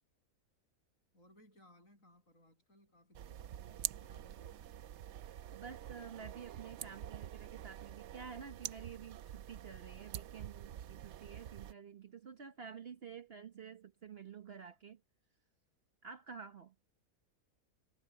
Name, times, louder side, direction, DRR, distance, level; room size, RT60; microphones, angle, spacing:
voice 1, 1.1-4.7 14.6-14.7, left 1 dB, 60° left, 8.4 m, -65 dB
sound 1, 3.1-11.7, right 11 dB, 65° right, 0.8 m, -46 dB
voice 2, 5.3-15.0 16.0-16.7, right 6 dB, 45° right, 1.1 m, -50 dB
omnidirectional pair, 1.5 m